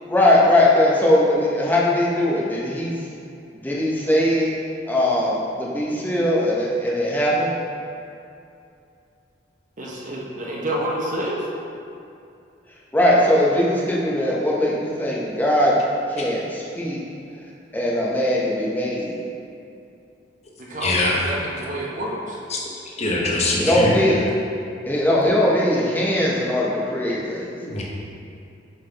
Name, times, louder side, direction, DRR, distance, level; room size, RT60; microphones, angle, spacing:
voice 1, 0.1-2.9 3.6-4.6 4.9-7.5 12.9-15.8 16.1-17.0 17.7-19.2 23.6-24.2 24.8-27.5, left 1 dB, 10° left, -6 dB, 0.8 m, -20 dB
voice 2, 9.8-11.5 20.6-22.4, right 1 dB, 45° right, -3 dB, 0.9 m, -28 dB
voice 3, 20.8-21.3 22.5-22.6 23.0-24.1 27.6-27.8, left 2 dB, 35° left, -3 dB, 0.9 m, -22 dB
5.8 x 5.7 x 3.3 m, 2.6 s
head